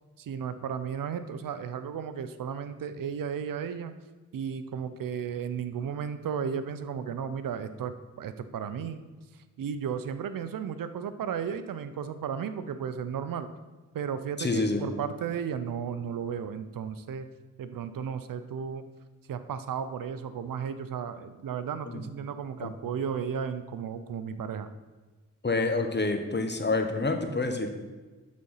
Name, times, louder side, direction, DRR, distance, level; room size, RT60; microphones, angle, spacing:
voice 1, 0.2-3.9 4.3-9.0 9.3-13.5 13.9-17.3 17.6-18.9 19.3-24.7, right 7 dB, 75° right, 11 dB, 0.7 m, -34 dB
voice 2, 14.4-14.8 21.9-22.0 22.6-22.7 25.4-27.7, left 3 dB, 30° left, 5 dB, 1.3 m, -28 dB
11.5 x 4.2 x 5.6 m, 1.3 s
supercardioid pair, 45°, 34 cm